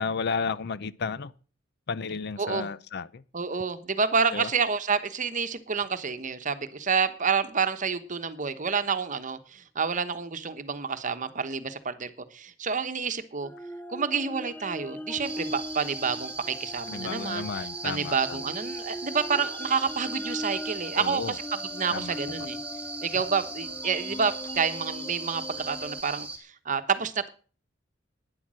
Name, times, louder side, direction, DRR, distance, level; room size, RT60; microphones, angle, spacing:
voice 1, 0.0-1.3 1.9-3.2 4.3-4.5 16.9-18.4 20.9-21.4 21.9-22.5, left 5 dB, 60° left, 0.6 m, -33 dB
voice 2, 2.4-2.7 3.3-13.5 13.9-21.4 21.7-22.6 23.0-27.3, right 5 dB, 40° right, 1.1 m, -29 dB
sound 1, 13.4-26.0, left 1 dB, 10° left, 0.7 m, -40 dB
sound 2, 15.2-26.4, right 3 dB, 5° right, 2.6 m, -39 dB
11.5 x 9.8 x 6.3 m
head